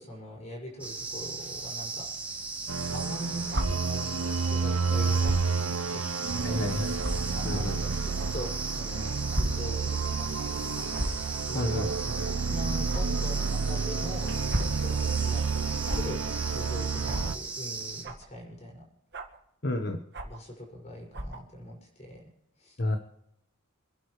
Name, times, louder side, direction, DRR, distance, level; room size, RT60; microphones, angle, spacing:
voice 1, 0.0-2.1 2.9-6.7 7.3-10.9 11.5-14.3 14.6-15.5 15.9-16.2 16.5-18.8 20.2-22.2 22.6-22.8, equal, 30° left, -1 dB, 6.7 m, -42 dB
sound 1, 0.8-18.0, right 3 dB, 5° right, 3.8 m, -37 dB
sound 2, 2.7-17.4, right 4 dB, 70° right, 0.6 m, -30 dB
sound 3, 3.5-3.7 5.2-5.5 6.2-6.3 7.0-7.1 8.2-8.3 9.3-9.5 9.8-9.9 10.9-11.2 12.9-13.0 14.3-14.8 15.9-16.0 17.0-17.3 18.0-18.3 19.1-19.4 20.1-20.4 21.1-21.4, right 1 dB, 55° right, 1.9 m, -32 dB
voice 2, 6.4-7.0 7.4-7.8 11.5-11.9 19.6-20.0 22.8-23.0, left 1 dB, 50° left, 5 dB, 1.3 m, -30 dB
28.5 x 11.0 x 3.4 m, 0.84 s
head